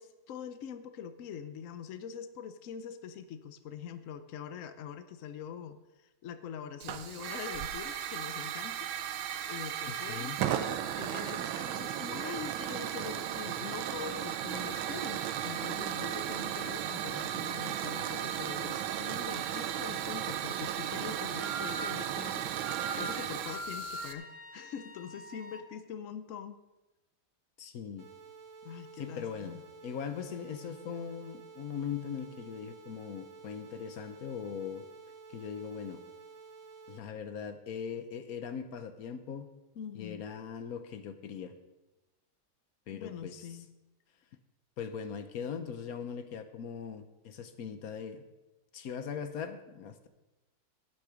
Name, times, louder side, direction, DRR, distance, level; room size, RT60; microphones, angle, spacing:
voice 1, 0.0-26.6 28.6-29.6 39.8-40.3 42.9-43.7, left 8 dB, 75° left, 10 dB, 0.7 m, -44 dB
Hiss / Fire, 6.8-24.1, right 10 dB, 80° right, 1.5 m, -35 dB
voice 2, 9.9-10.4 27.6-28.1 29.0-29.6 29.8-34.8 35.3-36.0 36.9-39.5 39.9-41.5 42.9-43.6 44.8-48.2 48.7-50.1, left 7 dB, 55° left, 9 dB, 1.1 m, -40 dB
Wind instrument woodwind instrument, 19.3-25.7, right 1 dB, 5° right, 1.7 m, -44 dB
sound 1, 28.0-37.0, right 5 dB, 45° right, 1.2 m, -51 dB
17.0 x 6.8 x 5.0 m, 1.0 s
omnidirectional pair, 2.2 m